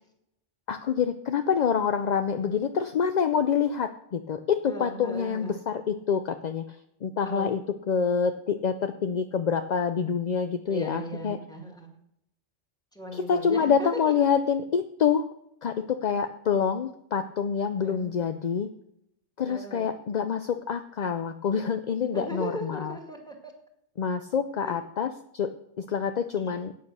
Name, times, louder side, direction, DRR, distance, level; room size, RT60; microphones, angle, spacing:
voice 1, 0.7-6.6 7.0-7.6 7.9-11.4 13.1-15.2 15.6-15.7 16.0-18.7 19.4-22.9 24.0-25.5 25.8-26.7, left 7 dB, 50° left, 8 dB, 0.5 m, -26 dB
voice 2, 4.7-5.6 7.2-7.6 10.7-12.0 12.9-14.3 17.8-18.1 19.5-19.9 22.1-23.5 24.6-24.8 26.4-26.6, right 1 dB, 5° left, 2 dB, 2.0 m, -37 dB
10.0 x 8.7 x 6.2 m, 0.77 s
omnidirectional pair, 1.3 m